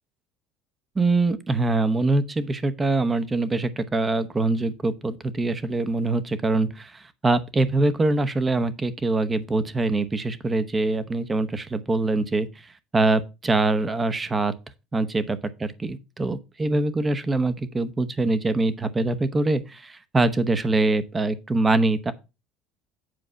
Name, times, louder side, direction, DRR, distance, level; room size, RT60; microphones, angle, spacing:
voice 1, 1.0-12.5 12.9-14.5 14.9-22.1, right 2 dB, 20° right, 0.9 m, -24 dB
7.8 x 4.7 x 5.6 m
supercardioid pair, 100°, 0 cm